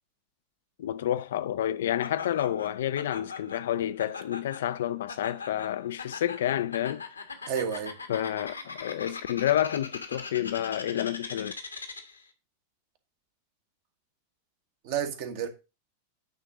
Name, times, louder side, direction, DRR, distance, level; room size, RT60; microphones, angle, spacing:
voice 1, 0.8-7.0 8.1-11.5, left 11 dB, 60° left, 0.4 m, -29 dB
Laughter, 2.0-12.3, left 4 dB, 80° left, 1.2 m, -41 dB
voice 2, 7.5-8.0 14.8-15.5, right 8 dB, 50° right, 1.4 m, -30 dB
9.3 x 3.8 x 5.8 m
figure-of-eight pair, 90°, 0 cm